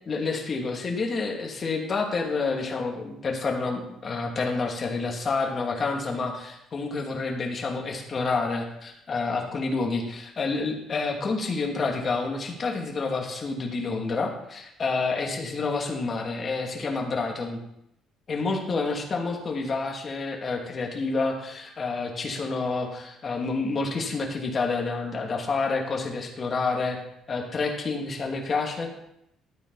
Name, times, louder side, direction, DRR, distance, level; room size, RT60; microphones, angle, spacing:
voice 1, 0.1-17.6 18.3-27.0 27.3-29.0, left 4 dB, 40° left, 1 dB, 2.6 m, -29 dB
13.0 x 9.2 x 4.2 m, 0.81 s
cardioid pair, 90°, 0 cm